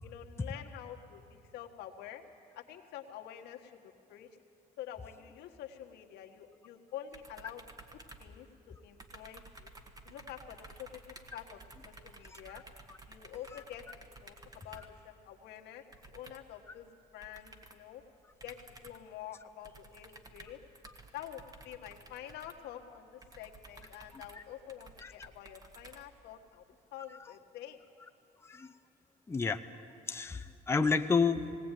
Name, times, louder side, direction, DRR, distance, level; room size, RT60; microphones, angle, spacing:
voice 1, 0.0-2.2 2.5-4.3 4.8-7.6 8.2-9.7 10.0-11.0 11.3-12.6 13.1-18.0 18.4-20.6 21.1-26.6 26.9-27.8, left 11 dB, 85° left, 3 dB, 1.6 m, -48 dB
sound 1, 7.1-8.7 9.0-15.0 15.9-16.6 17.2-17.9 18.4-19.1 19.6-26.5, right 2 dB, 20° right, 1.6 m, -54 dB
voice 2, 24.1-24.4 25.0-25.1 28.4-28.7 29.3-29.6 30.1-31.5, left 5 dB, 15° left, 6 dB, 0.7 m, -31 dB
19.0 x 18.5 x 9.1 m, 2.5 s
cardioid pair, 110°, 17 cm